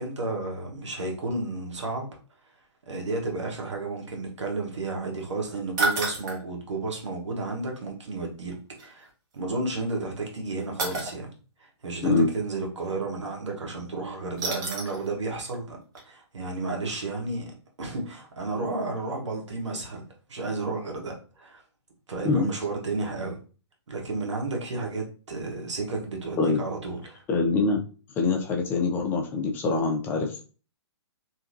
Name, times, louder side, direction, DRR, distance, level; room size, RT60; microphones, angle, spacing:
voice 1, 0.0-2.1 2.9-9.1 9.3-11.3 11.6-15.8 16.0-17.5 17.8-21.6 22.1-23.4 23.9-27.2, right 3 dB, 85° right, 0 dB, 1.1 m, -32 dB
sound 1, 5.8-6.4 8.8-8.9 10.8-11.1 14.4-15.0 15.5-15.6 16.0-16.1, right 3 dB, 40° right, 1.0 m, -29 dB
voice 2, 27.3-27.8 28.2-30.4, left 4 dB, 15° left, 1 dB, 0.3 m, -24 dB
2.9 x 2.5 x 2.5 m, 0.37 s
hypercardioid pair, 140°, 15 cm